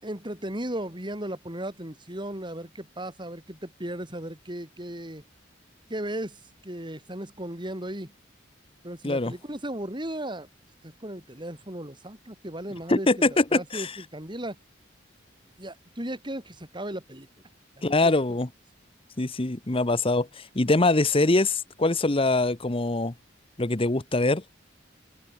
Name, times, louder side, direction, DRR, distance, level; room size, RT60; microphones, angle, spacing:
voice 1, 0.0-5.2 5.9-8.1 8.8-10.5 10.8-14.6 15.6-17.3 18.0-18.1, right 1 dB, 25° right, 5.9 m, -36 dB
voice 2, 12.9-13.9 17.8-18.5 19.2-23.1 23.6-24.4, left 2 dB, 30° left, 1.1 m, -23 dB
head